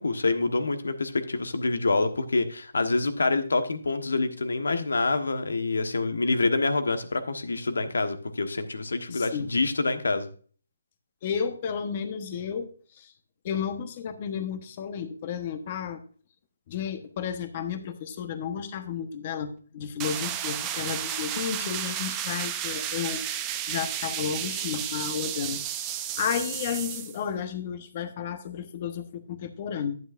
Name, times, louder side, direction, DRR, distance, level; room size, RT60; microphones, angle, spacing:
voice 1, 0.0-10.3, left 3 dB, 85° left, 9 dB, 1.2 m, -26 dB
voice 2, 9.1-9.6 11.2-13.1 13.4-16.0 16.7-23.2 23.7-30.0, left 7 dB, 30° left, 9 dB, 1.1 m, -32 dB
sound 1, 20.0-27.2, right 10 dB, 15° right, 0.6 m, -32 dB
10.5 x 9.4 x 2.5 m, 0.42 s
hypercardioid pair, 165°, 0 cm